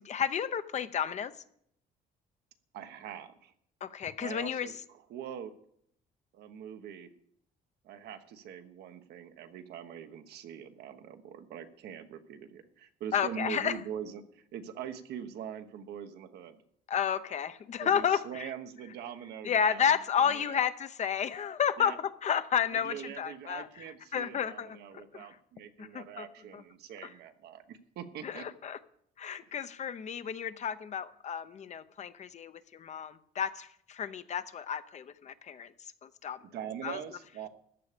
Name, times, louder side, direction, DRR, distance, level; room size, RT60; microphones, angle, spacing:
voice 1, 0.0-1.3 3.8-4.7 13.1-13.8 16.9-18.5 19.4-23.7 24.1-25.3 25.8-26.3 26.5-26.6 28.2-28.8 29.2-35.7 36.0-36.4 36.8-37.0, left 8 dB, 45° left, 12 dB, 0.8 m, -32 dB
voice 2, 2.7-3.5 4.2-5.6 6.3-7.1 7.8-16.6 17.8-19.9 20.2-20.6 21.8-22.0 22.7-28.5 29.5-29.6 36.5-37.5, right 8 dB, 75° right, 8 dB, 1.2 m, -43 dB
14.0 x 9.7 x 5.1 m, 0.68 s
cardioid pair, 110°, 17 cm